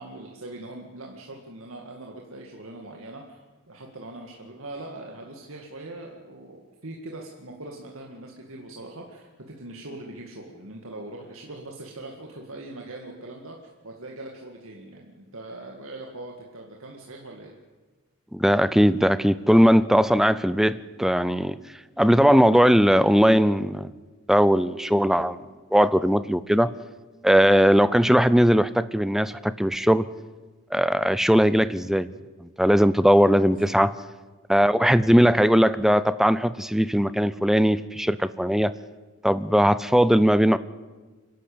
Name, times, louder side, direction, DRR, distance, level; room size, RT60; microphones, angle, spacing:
voice 1, 0.0-13.6 13.8-17.5 33.3-33.7, right 2 dB, 70° right, 0 dB, 2.1 m, -41 dB
voice 2, 18.3-21.6 22.0-23.9 24.3-25.4 25.7-26.7 27.2-30.1 30.7-32.1 32.4-33.9 34.5-38.7 39.2-40.6, equal, ahead, 16 dB, 0.5 m, -19 dB
26.0 x 11.5 x 8.6 m, 1.3 s
head